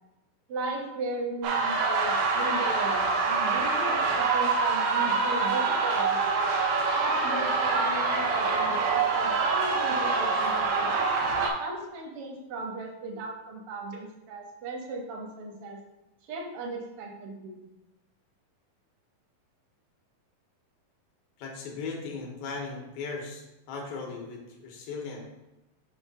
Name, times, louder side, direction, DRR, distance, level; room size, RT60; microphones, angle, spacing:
voice 1, 0.5-6.3 7.0-15.8 16.2-17.6, right 2 dB, 65° right, 0 dB, 1.4 m, -37 dB
sound 1, 1.4-11.5, right 4 dB, 85° right, 2.8 m, -25 dB
voice 2, 21.4-25.2, left 4 dB, 85° left, 1 dB, 3.0 m, -37 dB
6.9 x 3.4 x 5.5 m, 0.97 s
omnidirectional pair, 4.0 m